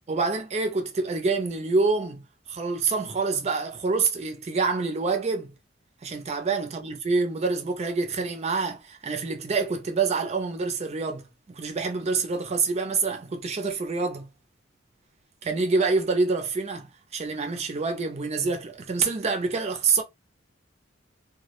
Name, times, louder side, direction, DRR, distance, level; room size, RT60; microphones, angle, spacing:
voice 1, 0.1-2.2 2.5-5.5 6.0-14.3 15.4-16.9 17.1-20.0, right 4 dB, 35° right, 0.4 m, -26 dB
2.2 x 2.0 x 2.9 m
head